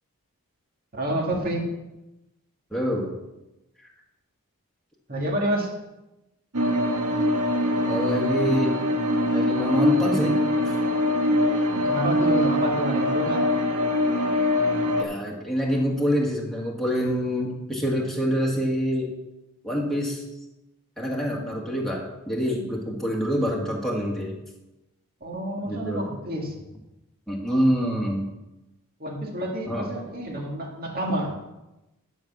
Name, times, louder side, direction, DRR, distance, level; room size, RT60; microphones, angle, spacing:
voice 1, 0.9-1.7 5.1-5.7 11.7-13.5 25.2-26.5 29.0-31.4, right 1 dB, 40° right, 0 dB, 2.1 m, -28 dB
voice 2, 2.7-3.1 7.9-8.8 9.3-10.4 15.0-19.1 19.6-20.3 21.0-24.4 25.6-26.0 27.3-28.3 29.7-29.9, equal, ahead, -3 dB, 1.8 m, -26 dB
sound 1, 6.5-15.0, left 1 dB, 80° right, 1.4 m, -23 dB
11.0 x 6.2 x 6.0 m, 0.97 s
head